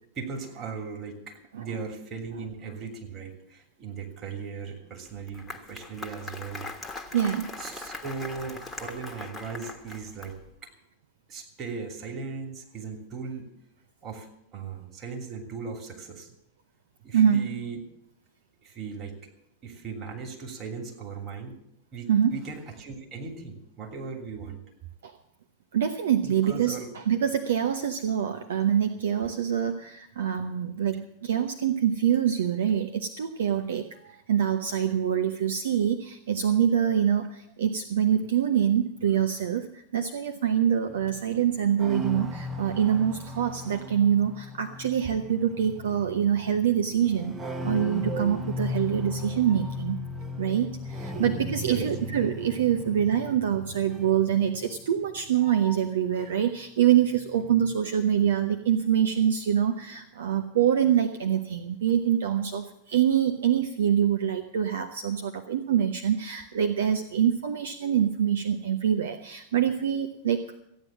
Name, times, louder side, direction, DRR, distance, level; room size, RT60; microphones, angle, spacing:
voice 1, 0.1-7.0 7.6-10.7 11.3-13.5 14.0-16.3 17.0-17.8 18.6-19.2 19.6-21.6 21.9-24.6 26.2-26.9 43.7-43.8 51.1-51.3 51.6-51.9, right 5 dB, 30° right, 2 dB, 2.9 m, -38 dB
Applause, 5.0-10.5, left 3 dB, 10° left, 1.4 m, -40 dB
voice 2, 7.1-7.5 17.1-17.5 22.1-22.4 25.0-25.1 25.7-47.4 47.6-50.0 50.4-70.4, right 9 dB, 60° right, 7 dB, 0.8 m, -25 dB
sound 1, 40.9-56.6 56.9-57.8, left 1 dB, 15° right, 1.1 m, -37 dB
14.5 x 9.4 x 7.4 m, 0.77 s
figure-of-eight pair, 90°, 0 cm